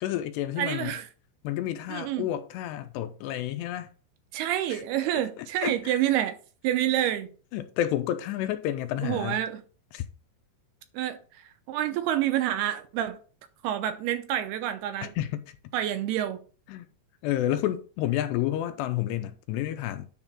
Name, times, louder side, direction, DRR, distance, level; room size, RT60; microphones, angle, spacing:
voice 1, 0.0-1.0 1.4-3.9 4.7-4.8 5.4-6.2 7.5-9.4 9.9-10.1 15.0-15.6 16.7-16.9 17.2-20.1, left 12 dB, 80° left, 2.7 m, -30 dB
voice 2, 0.6-1.1 1.9-2.3 4.3-6.4 6.6-7.3 9.0-9.6 10.9-11.2 11.7-13.2 13.6-15.1 15.7-16.4, right 12 dB, 75° right, 2.5 m, -28 dB
9.8 x 3.7 x 6.0 m
omnidirectional pair, 5.1 m